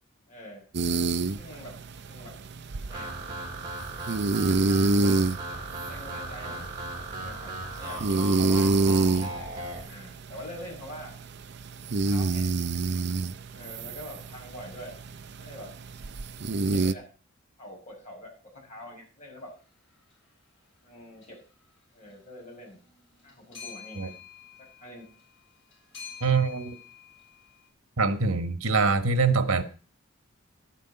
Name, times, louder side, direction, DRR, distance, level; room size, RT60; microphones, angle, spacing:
voice 1, 0.3-0.6 1.4-1.8 2.1-2.4 2.8-3.2 5.8-6.7 6.9-9.3 9.8-11.1 11.9-12.6 13.5-15.0 15.4-15.8 16.6-17.1 17.6-19.5 20.8-21.4 21.9-22.8 23.2-24.1 24.6-25.1, left 1 dB, 35° left, 6.5 m, -45 dB
sound 1, 0.7-16.9, right 3 dB, 50° right, 0.5 m, -28 dB
sound 2, 2.9-9.8, right 2 dB, 15° right, 7.1 m, -37 dB
sound 3, 19.9-20.1 21.2-21.6 21.9-27.7, left 7 dB, 55° left, 5.8 m, -48 dB
voice 2, 26.2-26.8 28.0-29.6, right 4 dB, 90° right, 1.4 m, -24 dB
12.0 x 9.2 x 5.6 m
head